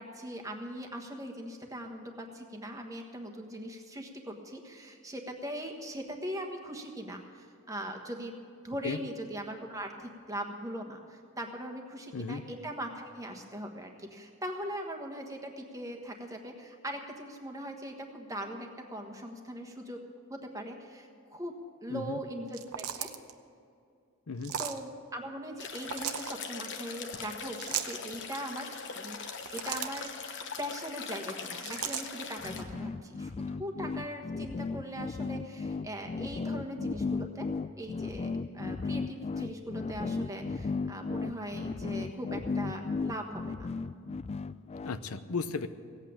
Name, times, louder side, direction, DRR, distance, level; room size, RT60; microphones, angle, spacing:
voice 1, 0.0-8.3 8.6-20.0 20.3-23.1 24.6-37.5 37.8-43.7, equal, 15° right, 3 dB, 1.4 m, -40 dB
sound 1, 22.5-23.3 24.4-24.8 25.8-26.3 27.6-28.0 29.2-30.1 31.6-32.1, right 9 dB, 85° right, 0.8 m, -36 dB
sound 2, 25.6-32.6, left 5 dB, 55° left, 1.1 m, -41 dB
sound 3, 32.4-45.0, left 4 dB, 30° left, 0.3 m, -35 dB
voice 2, 44.8-45.7, left 4 dB, 75° left, 12 dB, 0.7 m, -35 dB
17.0 x 8.4 x 8.7 m, 2.4 s
head